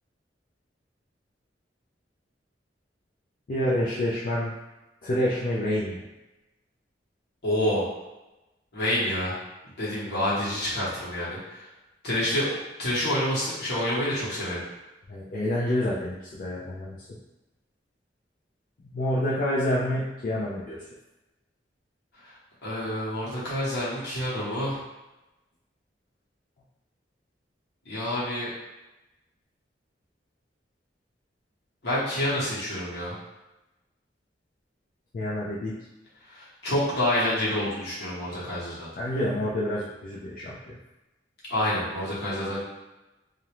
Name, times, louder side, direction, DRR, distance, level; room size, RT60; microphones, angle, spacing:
voice 1, 3.5-4.5 5.0-6.0 15.1-17.2 18.8-20.8 35.1-35.7 39.0-40.8, left 1 dB, 50° left, -7 dB, 0.4 m, -28 dB
voice 2, 7.4-7.9 8.7-9.4 9.8-11.7 12.0-14.6 22.2-24.8 27.8-28.5 31.8-33.2 36.3-38.9 41.5-42.6, left 1 dB, 65° left, -8 dB, 1.0 m, -28 dB
2.4 x 2.0 x 2.9 m, 1.0 s
head